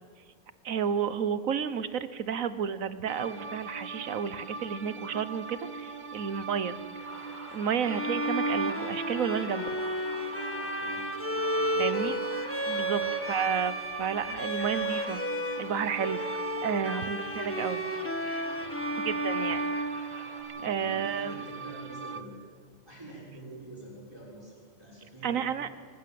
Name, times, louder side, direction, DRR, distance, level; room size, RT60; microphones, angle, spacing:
voice 1, 0.6-6.7 7.5-9.7 11.8-12.2 12.7-15.2 15.6-17.9 19.0-19.6 20.6-21.4 25.2-25.7, right 7 dB, 85° right, 14 dB, 1.5 m, -31 dB
sound 1, 3.1-22.2, right 4 dB, 40° right, 1.1 m, -42 dB
sound 2, 7.0-20.4, equal, 30° left, 4.9 m, -47 dB
Bowed string instrument, 7.8-15.7 16.0-20.8, right 1 dB, 10° left, 1.3 m, -32 dB
voice 2, 10.5-11.9 12.8-13.0 16.6-17.0 18.5-19.6 20.5-22.4 22.9-25.5, right 1 dB, 20° right, -4 dB, 5.9 m, -48 dB
26.5 x 15.5 x 7.8 m, 2.3 s
omnidirectional pair, 1.4 m